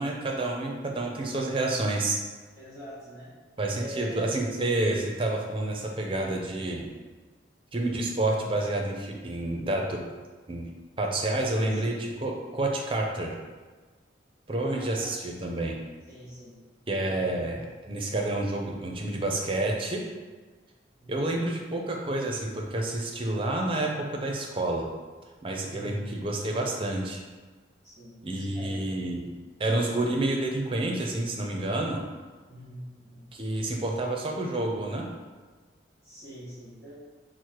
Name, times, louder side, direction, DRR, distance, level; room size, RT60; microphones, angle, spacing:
voice 1, 0.0-2.2 3.6-6.9 7.7-10.0 10.5-10.7 11.0-13.3 14.5-15.8 16.9-20.0 21.1-24.9 25.4-27.2 28.2-29.3 29.6-32.0 33.3-35.1, right 2 dB, 30° right, 1 dB, 0.5 m, -29 dB
voice 2, 2.5-3.3 3.7-4.4 11.5-11.8 12.2-12.3 14.6-15.3 16.1-16.5 21.0-21.4 25.6-26.1 27.8-28.9 32.5-33.2 33.5-33.6 36.0-36.9, equal, 10° left, -11 dB, 1.3 m, -44 dB
4.6 x 2.1 x 4.4 m, 1.4 s
head